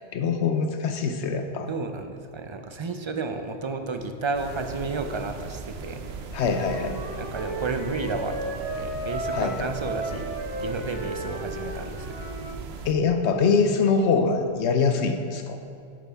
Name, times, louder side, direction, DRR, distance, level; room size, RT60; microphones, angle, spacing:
voice 1, 0.0-1.7 6.3-7.0 9.3-9.5 12.8-15.6, left 5 dB, 75° left, 6 dB, 1.0 m, -23 dB
voice 2, 1.7-6.0 7.2-12.1, right 3 dB, 40° right, 6 dB, 0.4 m, -32 dB
sound 1, 4.3-12.9, right 4 dB, 70° right, 0.9 m, -38 dB
Wind instrument woodwind instrument, 6.3-12.6, right 1 dB, 85° right, 1.6 m, -35 dB
11.0 x 8.2 x 3.5 m, 2.4 s
omnidirectional pair, 1.1 m